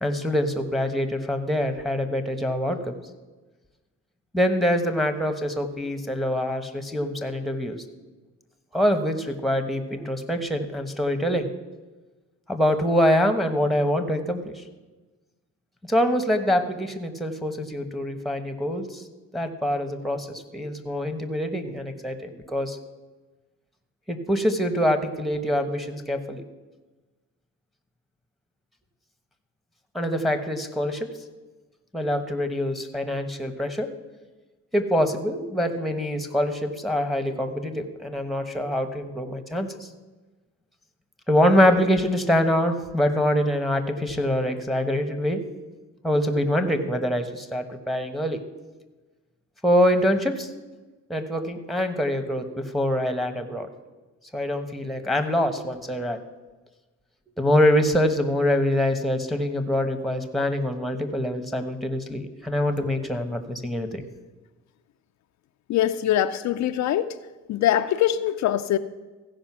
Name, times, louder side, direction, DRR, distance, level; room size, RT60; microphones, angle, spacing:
voice 1, 0.0-2.9 4.3-7.8 8.7-11.5 12.5-14.6 15.9-19.0 19.3-22.8 24.1-26.4 29.9-31.1 31.9-33.9 34.7-39.9 41.3-45.4 46.0-48.4 49.6-50.5 51.1-53.7 54.3-56.2 57.4-64.0, equal, ahead, 7 dB, 1.2 m, -24 dB
voice 2, 65.7-67.1 67.5-68.8, left 11 dB, 65° left, 9 dB, 0.5 m, -23 dB
15.5 x 5.2 x 6.1 m, 1.2 s
cardioid pair, 90°, 30 cm